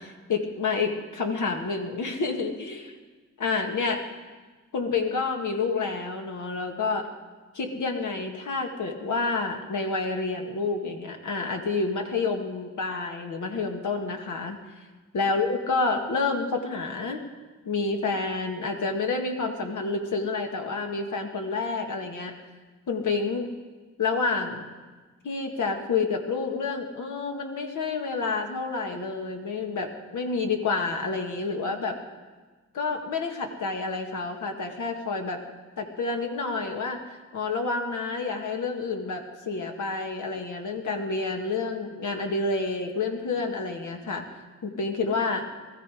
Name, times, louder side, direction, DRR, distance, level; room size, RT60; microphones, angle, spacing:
voice 1, 0.0-3.0 3.4-4.0 4.7-7.1 7.6-14.6 15.1-17.2 17.7-22.3 22.9-23.5 24.0-24.7 25.2-32.0 32.7-35.4 35.8-37.0 37.3-44.2 44.6-45.5, left 4 dB, 75° left, 3 dB, 1.8 m, -29 dB
20.0 x 14.5 x 5.0 m, 1.3 s
cardioid pair, 85°, 30 cm